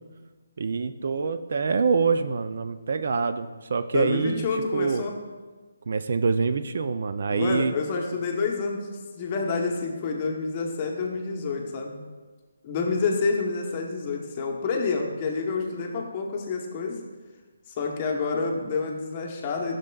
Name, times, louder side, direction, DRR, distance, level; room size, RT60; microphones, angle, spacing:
voice 1, 0.6-4.5 4.7-5.0 5.9-7.7, right 5 dB, 50° right, 10 dB, 0.3 m, -25 dB
voice 2, 3.9-5.2 7.3-8.9 9.1-12.0 12.6-17.0 17.7-19.8, left 4 dB, 25° left, 1 dB, 0.9 m, -28 dB
12.0 x 6.6 x 2.3 m, 1.3 s
hypercardioid pair, 170°, 0 cm